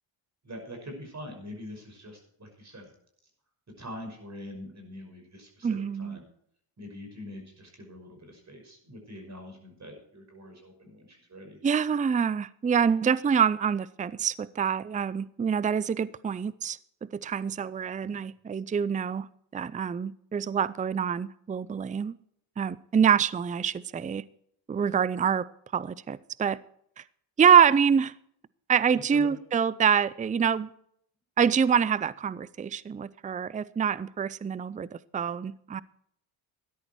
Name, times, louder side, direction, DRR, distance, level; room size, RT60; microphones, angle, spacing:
voice 1, 0.4-2.9 3.8-5.7 6.0-6.3 6.8-11.6 18.0-18.3 24.8-25.0 28.9-29.4, left 1 dB, 35° right, 5.8 m, -44 dB
voice 2, 5.6-6.2 11.6-19.3 19.5-22.2 22.6-24.2 24.7-25.5 25.7-26.6 27.0-27.1 27.4-28.1 28.7-30.7 31.4-35.8, right 7 dB, 15° right, 0.5 m, -26 dB
14.0 x 10.5 x 4.6 m
supercardioid pair, 75°, 49 cm